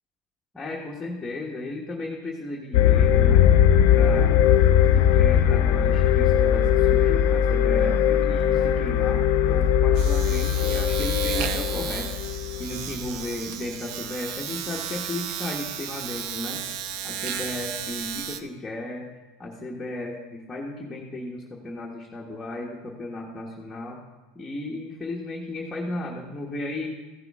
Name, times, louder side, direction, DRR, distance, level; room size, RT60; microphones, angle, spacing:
voice 1, 0.5-3.4 3.9-4.4 4.9-12.1 12.6-16.6 17.0-24.0 24.3-27.0, left 2 dB, 15° left, -3 dB, 1.3 m, -35 dB
sound 1, 2.7-13.0, left 9 dB, 70° left, 0.7 m, -20 dB
Domestic sounds home sounds, 6.6-6.8 7.1-18.4, right 8 dB, 55° right, 0.7 m, -34 dB
14.5 x 6.8 x 3.6 m, 1.2 s
supercardioid pair, 120°, 0 cm